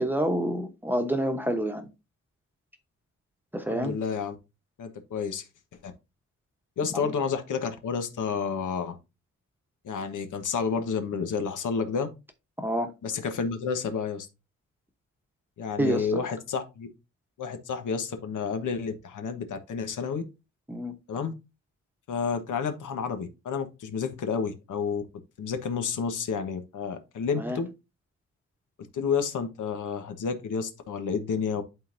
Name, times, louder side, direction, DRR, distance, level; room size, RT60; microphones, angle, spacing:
voice 1, 0.0-1.9 3.5-3.9 6.9-7.1 12.6-12.9 15.8-16.2 20.7-20.9 27.4-27.6, right 1 dB, 5° right, 1.0 m, -28 dB
voice 2, 3.7-4.3 4.8-5.4 5.8-5.9 6.8-9.0 9.8-12.1 13.0-14.3 15.6-16.9 17.4-20.2 21.1-21.3 22.1-25.0 25.4-27.7 28.9-31.6, left 6 dB, 85° left, 1.2 m, -30 dB
11.5 x 3.9 x 2.6 m
wide cardioid pair, 155°, 30 cm